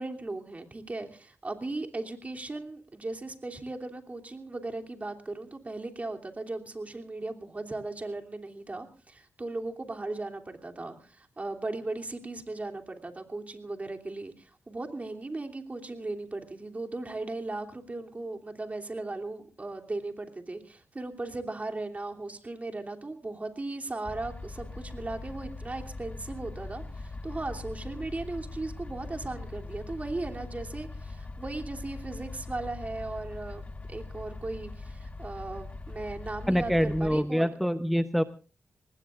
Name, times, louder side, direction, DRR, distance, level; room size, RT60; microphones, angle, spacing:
voice 1, 0.0-33.6 33.9-37.5, right 2 dB, 35° right, 3 dB, 3.0 m, -37 dB
sound 1, 24.0-37.1, left 3 dB, 30° left, 1.4 m, -41 dB
voice 2, 36.5-38.2, equal, ahead, 9 dB, 0.8 m, -25 dB
24.5 x 20.0 x 2.5 m, 0.36 s
cardioid pair, 65°, 5 cm